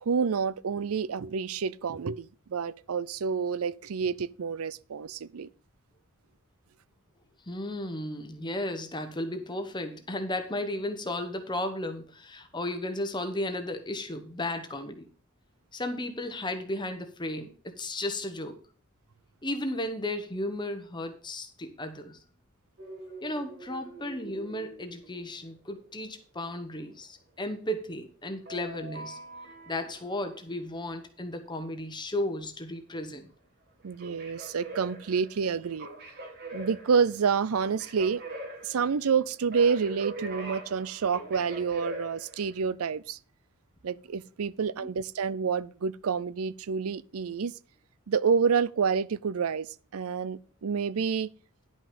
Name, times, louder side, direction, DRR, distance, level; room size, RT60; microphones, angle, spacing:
voice 1, 0.0-5.5 33.8-35.9 36.5-38.2 38.6-43.2 43.8-47.5 48.1-49.7 49.9-51.3, right 6 dB, 75° right, 0.5 m, -28 dB
voice 2, 7.5-15.1 15.7-18.6 19.4-22.2 23.2-29.2 29.7-33.3 44.8-44.9, left 1 dB, 20° left, 1.0 m, -34 dB
sound 1, 22.8-25.7 28.5-30.2 33.8-42.7, right 2 dB, 50° right, 2.8 m, -43 dB
10.5 x 6.0 x 5.2 m
head